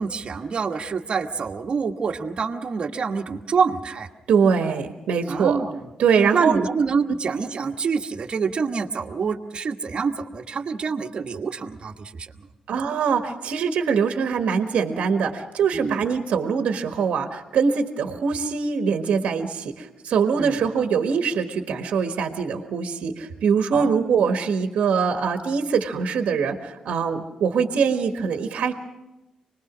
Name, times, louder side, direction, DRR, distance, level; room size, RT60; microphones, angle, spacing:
voice 1, 0.0-4.1 5.3-5.8 6.3-12.3 15.7-16.0 20.4-20.6 23.7-24.0, right 5 dB, 50° right, 4 dB, 1.4 m, -26 dB
voice 2, 4.3-5.6 6.0-6.6 12.7-28.7, right 6 dB, 75° right, 6 dB, 1.4 m, -23 dB
25.0 x 20.0 x 6.2 m, 1.0 s
cardioid pair, 70°, 2 cm